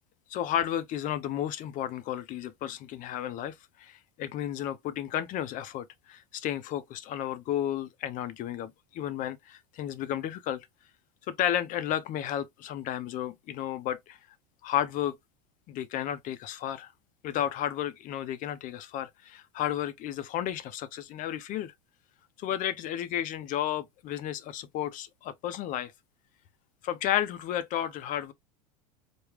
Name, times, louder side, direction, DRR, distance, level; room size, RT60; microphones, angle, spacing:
voice 1, 0.3-10.7 11.3-14.2 14.6-15.2 15.7-16.9 17.2-21.7 22.4-25.9 26.8-28.3, left 11 dB, 40° left, 0.5 m, -32 dB
3.5 x 2.2 x 3.1 m
hypercardioid pair, 105°, 20 cm